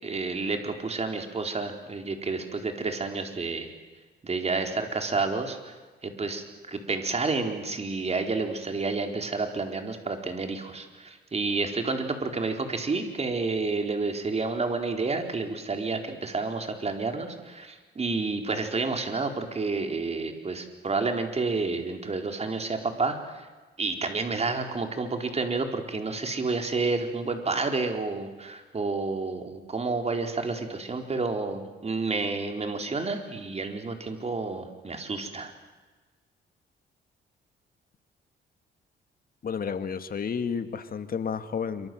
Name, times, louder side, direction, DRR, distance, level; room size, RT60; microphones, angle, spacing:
voice 1, 0.0-3.7 4.2-23.5 23.8-35.5, right 3 dB, 30° right, 5 dB, 4.4 m, -30 dB
voice 2, 39.4-41.9, left 6 dB, 45° left, 10 dB, 2.0 m, -31 dB
26.5 x 25.0 x 8.0 m, 1.3 s
cardioid pair, 90°, 20 cm